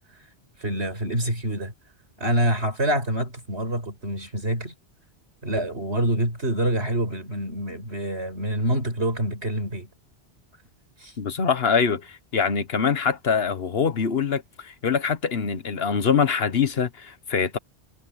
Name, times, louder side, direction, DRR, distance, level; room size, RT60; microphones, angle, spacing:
voice 1, 0.6-1.7 2.2-4.7 5.4-9.9 11.0-11.1, right 1 dB, 70° right, 6.1 m, -26 dB
voice 2, 11.2-17.6, left 6 dB, 60° left, 1.4 m, -24 dB
omnidirectional pair, 1.1 m